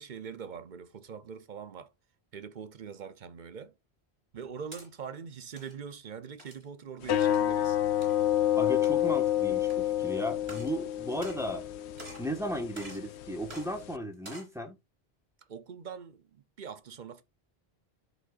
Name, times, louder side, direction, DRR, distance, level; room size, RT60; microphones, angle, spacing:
voice 1, 0.0-1.9 2.3-3.7 4.3-7.8 15.5-17.2, right 6 dB, 50° right, 0.8 m, -43 dB
sound 1, 4.3-4.9 5.4-5.7 6.4-6.7 7.2-7.5 8.0-8.1 8.7-9.2 9.7-9.8 10.4-10.8 11.1-11.7 12.0-12.3 12.7-13.1 13.5-13.7 14.1-14.5, right 1 dB, 70° right, 3.7 m, -47 dB
sound 2, 7.0-14.0, left 12 dB, 85° left, 0.9 m, -29 dB
voice 2, 8.6-11.6 12.2-14.8, equal, 5° right, 1.4 m, -35 dB
12.5 x 5.1 x 2.5 m
omnidirectional pair, 1.1 m